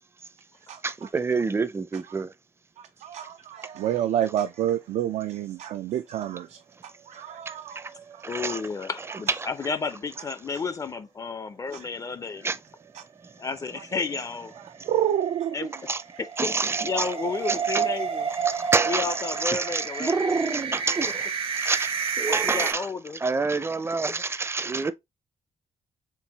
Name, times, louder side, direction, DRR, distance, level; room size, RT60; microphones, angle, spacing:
voice 1, 0.8-2.3 7.8-7.9 8.2-8.6 12.4-12.6 15.9-16.0 16.4-17.1 17.5-17.9 18.4-21.3 21.6-22.9 23.1-24.9, right 4 dB, 20° right, 0.5 m, -27 dB
voice 2, 2.8-7.8 8.1-8.6 11.7-11.9 12.9-13.0 14.8-15.7, right 11 dB, 85° right, 0.4 m, -29 dB
sound 1, 7.8-8.7 9.0-9.1 9.5-9.6 13.7-22.7, right 6 dB, 55° right, 0.7 m, -31 dB
voice 3, 8.3-12.5 13.4-14.5 15.5-15.7 16.2-16.5 16.8-18.3 18.9-20.4 22.2-23.2, left 4 dB, 30° left, 0.4 m, -32 dB
4.5 x 3.6 x 2.8 m
cardioid pair, 95°, 11 cm